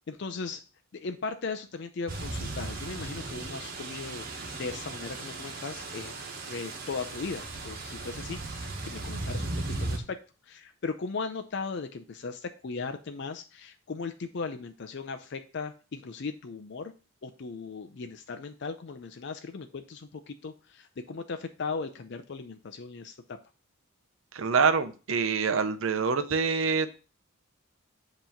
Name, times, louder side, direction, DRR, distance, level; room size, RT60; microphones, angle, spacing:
voice 1, 0.1-0.6 0.9-4.2 4.5-6.1 6.5-10.2 10.4-16.9 17.2-23.4, left 4 dB, 55° left, 7 dB, 0.5 m, -37 dB
sound 1, 2.1-10.0, right 2 dB, 45° right, 1.2 m, -37 dB
voice 2, 24.3-27.0, right 5 dB, 70° right, 10 dB, 0.7 m, -26 dB
7.8 x 3.0 x 5.6 m, 0.35 s
head